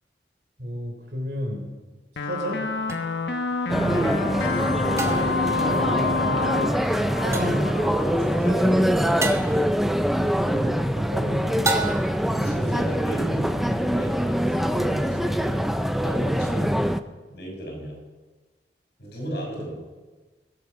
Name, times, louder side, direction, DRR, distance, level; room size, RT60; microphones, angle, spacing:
voice 1, 0.6-1.6 2.2-2.6 5.6-5.9 7.2-7.6 10.4-11.7 12.3-12.9, equal, 65° right, 2 dB, 3.7 m, -32 dB
sound 1, 2.2-8.3, left 4 dB, 85° left, 1.2 m, -28 dB
sound 2, 2.9-3.0 5.0-5.5 7.3-7.7 9.2-9.6 11.6-12.3, right 2 dB, 15° right, 1.1 m, -28 dB
voice 2, 3.5-4.3 6.8-9.6 11.1-11.3 12.3-15.6 16.0-16.8 17.3-18.0 19.0-19.7, right 1 dB, 65° left, 0 dB, 5.7 m, -34 dB
sound 3, 3.7-17.0, equal, ahead, 0.5 m, -24 dB
21.5 x 8.0 x 6.1 m, 1.3 s
head